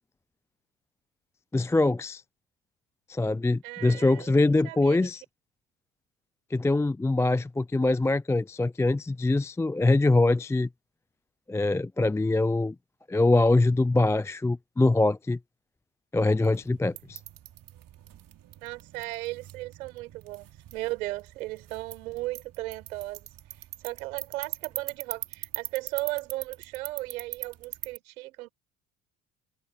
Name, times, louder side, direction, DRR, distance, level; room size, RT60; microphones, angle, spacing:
voice 1, 1.5-2.2 3.1-5.2 6.5-10.7 11.5-12.7 13.1-15.4 16.1-17.2, left 2 dB, 5° left, 0.4 m, -23 dB
voice 2, 3.6-4.4 4.6-5.1 18.6-23.3 23.6-28.5, right 18 dB, 80° right, 4.8 m, -36 dB
sound 1, 16.3-28.0, right 12 dB, 50° right, 3.2 m, -42 dB
hypercardioid pair, 65°, 42 cm